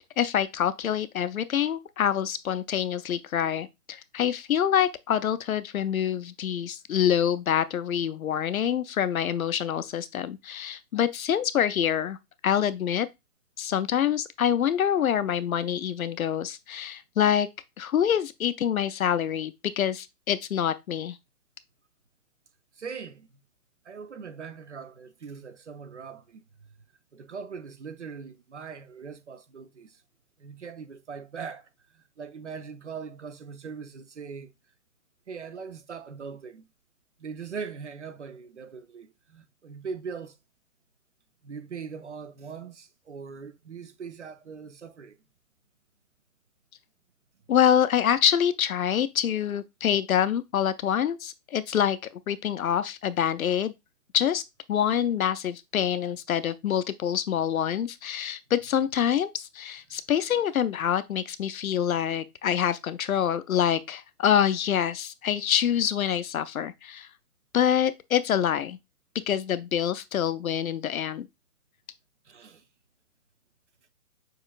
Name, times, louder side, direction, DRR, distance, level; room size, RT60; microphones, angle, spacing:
voice 1, 0.2-12.2 12.4-13.1 13.6-17.5 17.8-21.2 47.5-52.0 52.3-53.7 54.1-54.4 54.7-67.1 67.5-68.8 69.3-71.3, left 9 dB, 60° left, 0.5 m, -26 dB
voice 2, 22.8-23.3 23.8-26.4 27.1-30.0 30.4-34.5 35.3-36.7 37.2-40.4 41.4-45.2 72.2-72.6, right 6 dB, 50° right, 0.5 m, -41 dB
6.6 x 3.1 x 2.3 m
hypercardioid pair, 175°, 47 cm